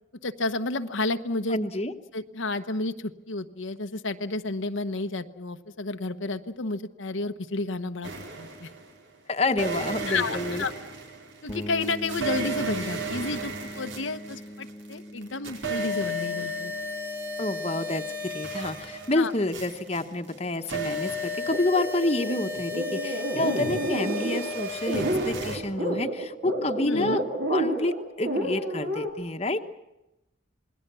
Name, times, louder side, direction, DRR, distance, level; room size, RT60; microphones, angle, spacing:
voice 1, 0.2-1.6 2.1-8.1 8.4-8.7 10.1-10.7 11.4-16.7 19.1-19.3 26.8-27.2, left 3 dB, 90° left, 7 dB, 1.1 m, -31 dB
voice 2, 1.5-1.9 9.3-10.6 17.4-27.2 27.5-29.6, left 2 dB, 30° left, 6 dB, 1.2 m, -28 dB
sound 1, 8.0-8.9 9.5-14.9 15.2-25.6, equal, 80° right, 4.5 m, -34 dB
sound 2, 11.5-21.1, equal, 15° left, 1.6 m, -43 dB
sound 3, 21.5-29.1, right 1 dB, 60° right, 4.3 m, -29 dB
27.5 x 20.5 x 7.0 m, 0.94 s
head